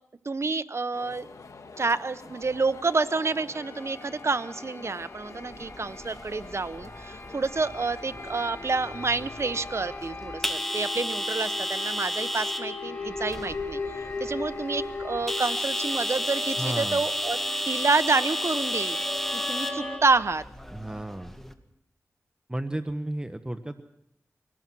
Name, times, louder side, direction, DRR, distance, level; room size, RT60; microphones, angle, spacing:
voice 1, 0.2-1.3 1.8-13.8 14.2-17.4 17.7-19.0 19.3-20.4, right 3 dB, 55° right, 13 dB, 0.9 m, -28 dB
sound 1, 0.9-9.7, left 3 dB, 85° left, 1.6 m, -47 dB
sound 2, 3.5-20.0, left 3 dB, 40° left, 6.6 m, -38 dB
sound 3, 5.4-21.5, equal, 5° left, 1.9 m, -33 dB
voice 2, 16.5-17.0 20.7-21.3 22.5-23.8, right 1 dB, 15° right, 8 dB, 1.0 m, -33 dB
24.5 x 18.5 x 6.2 m, 0.79 s
cardioid pair, 50°, 5 cm